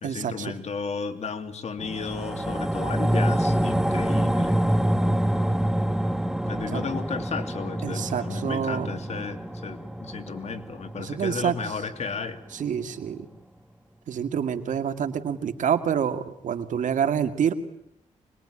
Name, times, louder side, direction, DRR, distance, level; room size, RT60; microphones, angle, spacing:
voice 1, 0.0-4.6 6.4-12.4, left 5 dB, 60° left, 8 dB, 2.9 m, -34 dB
sound 1, 1.8-12.4 12.8-12.9, right 1 dB, 5° right, 1.4 m, -26 dB
voice 2, 7.8-9.0 11.0-11.5 12.6-13.3 14.1-17.5, right 8 dB, 85° right, 8 dB, 2.1 m, -27 dB
25.0 x 21.5 x 10.0 m, 0.73 s
cardioid pair, 85°, 13 cm